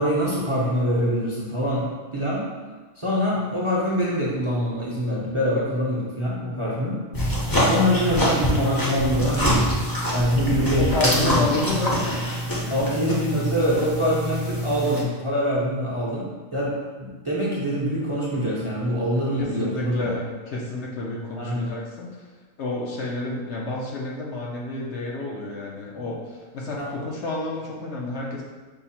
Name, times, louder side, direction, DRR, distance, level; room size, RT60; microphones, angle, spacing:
voice 1, 0.0-2.5 3.0-7.0 7.6-9.7 10.1-11.4 12.7-20.1 21.4-21.7 26.0-26.1 26.8-26.9, equal, 30° right, -6 dB, 0.6 m, -24 dB
sound 1, 7.1-15.0, equal, 20° left, 0.6 m, -25 dB
voice 2, 10.8-12.0 12.6-12.9 19.4-22.3 22.6-28.4, left 2 dB, 65° left, -2 dB, 0.8 m, -30 dB
5.6 x 2.1 x 4.2 m, 1.3 s
omnidirectional pair, 1.4 m